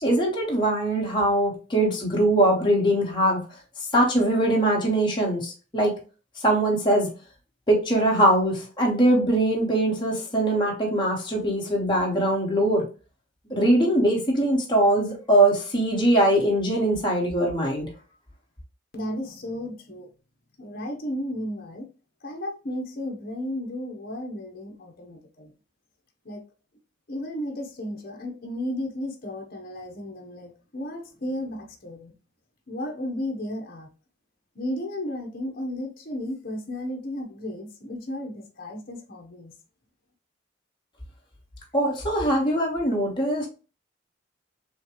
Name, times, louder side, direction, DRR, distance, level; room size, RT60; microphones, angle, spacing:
voice 1, 0.0-3.4 3.9-5.9 6.4-7.1 7.7-12.8 13.5-17.9 41.7-43.5, right 1 dB, 25° left, 1.6 m, -22 dB
voice 2, 18.9-20.1 20.6-21.9 22.2-25.5 26.2-26.4 27.1-32.1 32.7-33.9 34.5-39.5, left 1 dB, 50° left, 1.1 m, -34 dB
6.9 x 2.4 x 3.2 m
head